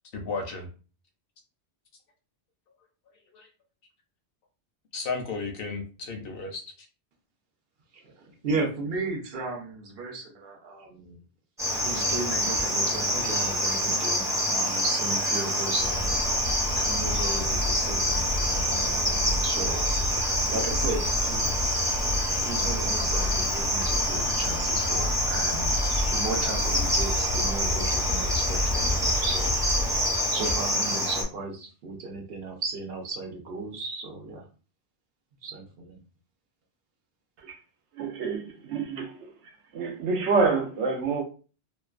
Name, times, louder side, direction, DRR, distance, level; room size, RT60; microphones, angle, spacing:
voice 1, 0.1-0.7 3.3-3.5 4.9-6.6, left 4 dB, 65° left, 0.7 m, -33 dB
voice 2, 7.9-11.2 11.8-16.2 16.8-21.9 22.4-29.5 30.3-34.4 35.4-36.0, right 3 dB, 65° right, 0.8 m, -35 dB
Cricket, 11.6-31.2, equal, 5° right, 0.3 m, -27 dB
sound 1, 15.8-30.1, left 1 dB, 90° left, 0.9 m, -32 dB
voice 3, 38.0-39.3 39.7-41.2, right 4 dB, 90° right, 0.9 m, -27 dB
2.5 x 2.2 x 2.4 m
omnidirectional pair, 1.1 m